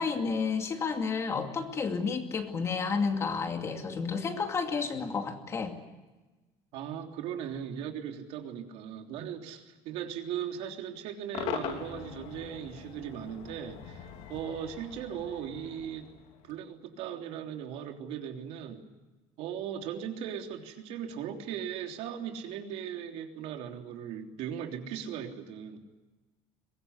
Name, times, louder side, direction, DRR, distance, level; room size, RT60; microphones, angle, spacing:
voice 1, 0.0-5.8, left 5 dB, 25° left, 5 dB, 2.5 m, -31 dB
voice 2, 6.7-16.1 16.4-18.8 19.4-25.8, right 9 dB, 65° right, 4 dB, 3.3 m, -38 dB
Cheering / Crowd / Fireworks, 11.3-16.6, left 9 dB, 65° left, 3.4 m, -42 dB
23.5 x 21.0 x 9.8 m, 1.1 s
cardioid pair, 175°, 11 cm